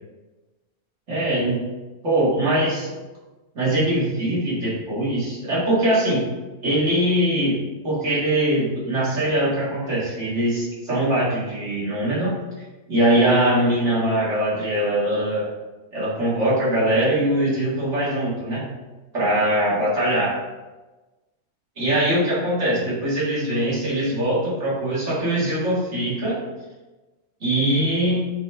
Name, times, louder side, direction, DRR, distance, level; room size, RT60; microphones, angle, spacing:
voice 1, 1.1-1.6 2.0-2.9 3.5-6.2 6.6-7.6 7.8-12.4 12.9-15.5 15.9-18.6 19.1-20.4 21.8-26.4 27.4-28.3, right 1 dB, 50° right, -8 dB, 2.3 m, -22 dB
7.3 x 4.1 x 3.3 m, 1.2 s
omnidirectional pair, 1.6 m